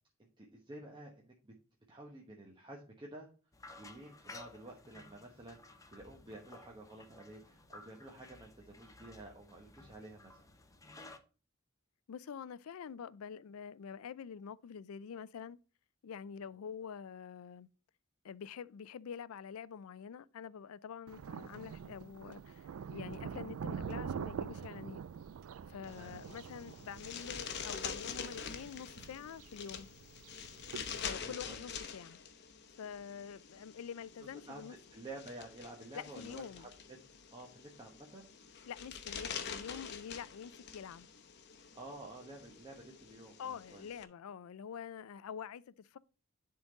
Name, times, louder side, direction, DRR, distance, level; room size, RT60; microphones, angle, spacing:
voice 1, 0.2-1.5 1.9-3.3 3.7-10.4 21.2-21.3 25.9-26.2 31.0-31.6 34.5-34.6 34.9-36.7 37.3-38.3 40.1-40.2 41.7-43.9, right 2 dB, 25° right, 1.1 m, -51 dB
sound 1, 3.5-11.2, left 2 dB, 15° left, 0.7 m, -55 dB
voice 2, 12.1-15.6 16.0-17.7 18.2-25.0 25.7-29.9 31.0-32.2 32.8-34.8 35.9-36.7 38.6-41.1 43.4-46.0, left 7 dB, 85° left, 0.4 m, -46 dB
Thunder, 21.1-31.1, right 7 dB, 70° right, 0.3 m, -45 dB
sound 2, 25.8-44.0, left 6 dB, 55° left, 0.9 m, -46 dB
10.5 x 3.9 x 3.9 m
head